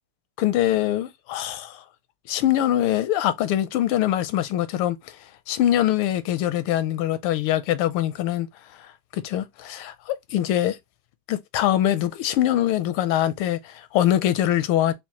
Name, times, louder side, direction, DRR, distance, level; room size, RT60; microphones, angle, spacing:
voice 1, 0.4-1.8 2.3-5.2 5.5-8.5 9.1-10.8 11.3-14.9, left 12 dB, 85° left, 1.5 m, -23 dB
6.1 x 2.3 x 2.8 m
omnidirectional pair, 2.3 m